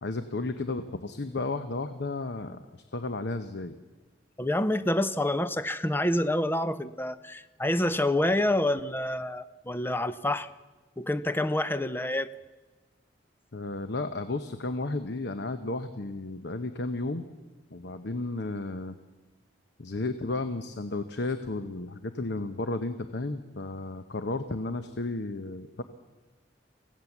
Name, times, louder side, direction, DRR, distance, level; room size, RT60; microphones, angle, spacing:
voice 1, 0.0-3.8 13.5-17.3 17.7-18.9 19.8-25.8, left 2 dB, 65° left, 9 dB, 0.9 m, -33 dB
voice 2, 4.4-10.5 11.0-12.3, left 1 dB, 10° left, 13 dB, 0.7 m, -27 dB
24.5 x 16.5 x 7.2 m, 1.2 s
head